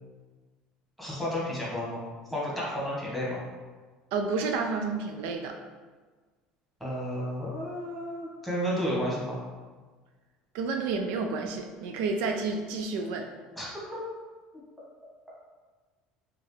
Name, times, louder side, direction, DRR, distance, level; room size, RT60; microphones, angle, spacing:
voice 1, 1.0-3.4 6.8-9.4 13.5-14.0, equal, ahead, -6 dB, 1.4 m, -32 dB
voice 2, 4.1-5.6 10.5-13.3, right 4 dB, 75° right, 3 dB, 0.4 m, -30 dB
4.4 x 2.5 x 3.2 m, 1.4 s
cardioid pair, 120°, 3 cm